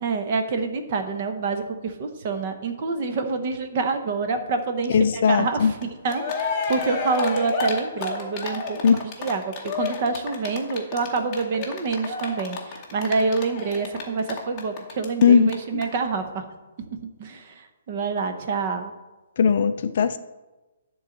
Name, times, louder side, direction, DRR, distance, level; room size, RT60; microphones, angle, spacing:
voice 1, 0.0-16.5 17.0-18.9, right 4 dB, 30° right, 6 dB, 0.8 m, -27 dB
voice 2, 4.9-5.7 8.8-9.0 15.2-15.8 19.4-20.2, left 6 dB, 40° left, 11 dB, 0.4 m, -19 dB
Cheering, 5.8-5.9 6.1-15.2 15.5-15.6 15.8-15.9, left 4 dB, 15° left, 0.9 m, -30 dB
10.5 x 3.9 x 7.1 m, 1.1 s
hypercardioid pair, 180°, 0 cm